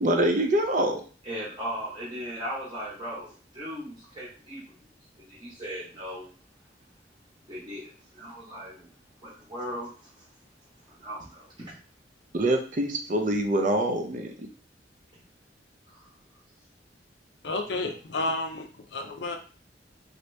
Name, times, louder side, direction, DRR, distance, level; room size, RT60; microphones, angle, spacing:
voice 1, 0.0-1.0 12.3-14.3, right 1 dB, 45° right, 4 dB, 0.5 m, -25 dB
voice 2, 1.2-4.8 5.2-6.3 7.5-8.9 9.2-10.3 10.9-11.8 15.9-16.1, equal, 25° right, -7 dB, 1.0 m, -38 dB
voice 3, 17.4-19.4, left 2 dB, 75° left, 4 dB, 0.5 m, -31 dB
2.8 x 2.6 x 3.2 m, 0.39 s
head